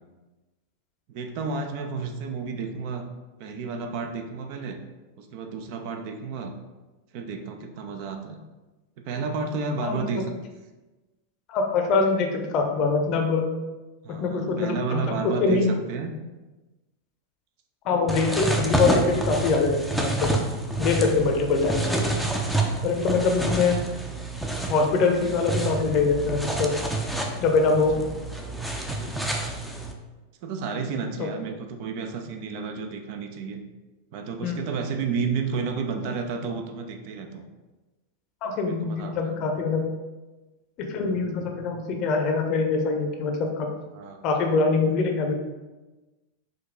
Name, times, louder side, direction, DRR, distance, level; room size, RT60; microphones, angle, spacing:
voice 1, 1.1-3.0 3.4-4.8 5.2-6.5 7.1-8.4 9.0-10.3 14.0-16.1 21.3-21.4 22.3-22.8 27.9-28.1 30.4-33.6 34.1-37.4 38.6-39.1 43.9-44.3, right 5 dB, 45° right, 5 dB, 0.5 m, -31 dB
voice 2, 9.8-10.2 11.5-13.5 14.1-15.6 17.8-20.3 20.8-22.2 22.8-23.8 24.7-26.8 27.4-28.0 31.2-31.3 34.4-34.6 38.4-39.8 40.8-43.7 44.2-45.3, left 4 dB, 40° left, 3 dB, 0.7 m, -24 dB
sound 1, 18.1-29.9, right 2 dB, ahead, 0.5 m, -28 dB
5.1 x 2.7 x 3.8 m, 1.2 s
figure-of-eight pair, 90°, 0 cm